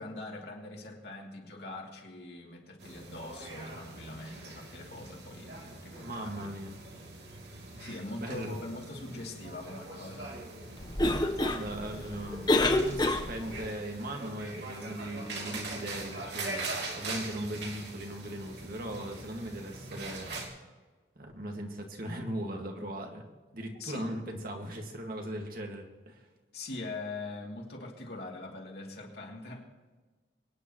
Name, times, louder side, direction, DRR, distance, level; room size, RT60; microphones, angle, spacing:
voice 1, 0.0-6.5 7.8-10.4 23.8-24.1 26.5-29.7, left 2 dB, 60° left, -1 dB, 2.9 m, -42 dB
sound 1, 2.8-20.5, right 2 dB, 65° right, 2.9 m, -42 dB
voice 2, 6.0-6.7 7.7-8.6 11.4-20.5 21.2-26.3, right 1 dB, 50° right, 2 dB, 2.0 m, -39 dB
Cough, 10.8-13.7, left 2 dB, 25° left, 0.9 m, -28 dB
24.0 x 10.0 x 3.1 m, 1.3 s
head